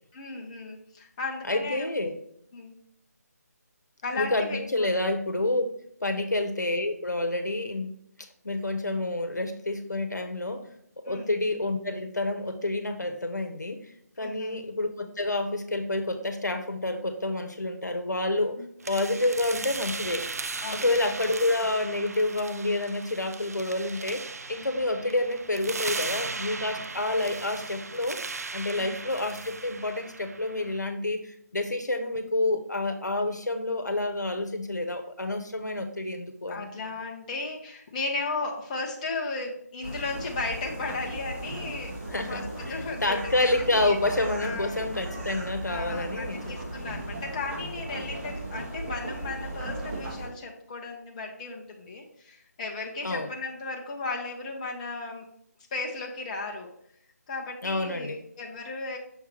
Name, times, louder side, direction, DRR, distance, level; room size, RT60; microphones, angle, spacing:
voice 1, 0.1-1.9 2.5-2.8 4.0-4.9 11.1-11.3 14.2-14.6 18.6-18.7 20.6-20.9 25.0-25.1 28.8-28.9 36.5-42.0 42.3-44.0 44.4-44.9 45.6-55.2 55.7-56.7 57.3-59.0, left 3 dB, 25° left, 0 dB, 0.9 m, -35 dB
voice 2, 1.5-2.2 4.1-5.7 6.0-7.9 8.4-10.7 11.0-13.9 14.2-18.6 18.9-20.2 20.7-28.2 28.5-36.6 42.1-46.6 53.0-53.3 57.6-58.2, left 2 dB, 85° left, 5 dB, 1.0 m, -28 dB
sound 1, 18.8-30.8, right 4 dB, 60° right, 0.5 m, -37 dB
sound 2, 39.8-50.3, right 1 dB, 40° right, 2.0 m, -37 dB
6.4 x 4.6 x 3.3 m, 0.68 s
figure-of-eight pair, 155°, 9 cm